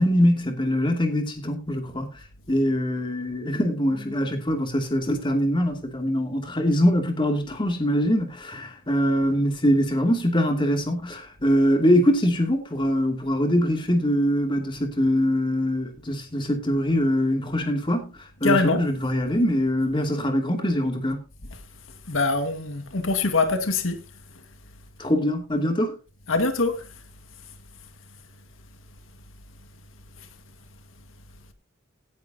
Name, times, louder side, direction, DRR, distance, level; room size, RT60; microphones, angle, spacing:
voice 1, 0.0-2.1 2.5-18.1 18.4-21.2 25.0-26.0, equal, 25° left, 2.6 m, -23 dB
voice 2, 18.4-18.8 21.5-21.6 22.1-24.0 26.3-27.0 30.2-30.3, left 3 dB, 85° left, 1.8 m, -24 dB
17.0 x 10.5 x 2.8 m
head